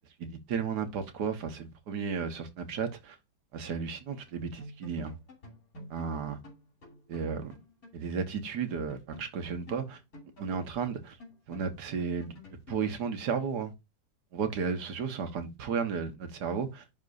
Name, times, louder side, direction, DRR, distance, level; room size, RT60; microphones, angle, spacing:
voice 1, 0.2-3.2 3.5-5.1 5.9-6.4 7.1-7.6 7.9-10.0 10.4-11.2 11.5-12.4 12.7-13.7 14.3-16.8, right 6 dB, 80° right, 1.8 m, -33 dB
sound 1, 4.2-4.3 4.6-8.0 8.3-8.4 8.7-13.0, left 1 dB, 60° left, 3.3 m, -50 dB
11.0 x 4.4 x 2.6 m
omnidirectional pair, 1.7 m